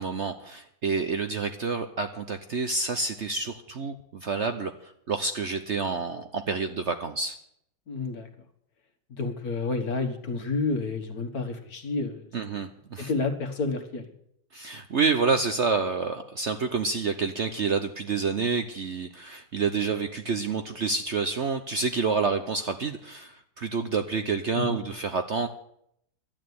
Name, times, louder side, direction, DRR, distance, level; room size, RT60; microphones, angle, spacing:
voice 1, 0.0-7.4 12.3-13.1 14.5-25.5, right 4 dB, 50° right, 8 dB, 0.9 m, -28 dB
voice 2, 7.9-8.3 9.1-12.3 13.0-14.1 24.6-24.8, left 3 dB, 55° left, 6 dB, 2.0 m, -30 dB
12.0 x 8.9 x 9.4 m, 0.71 s
omnidirectional pair, 1.9 m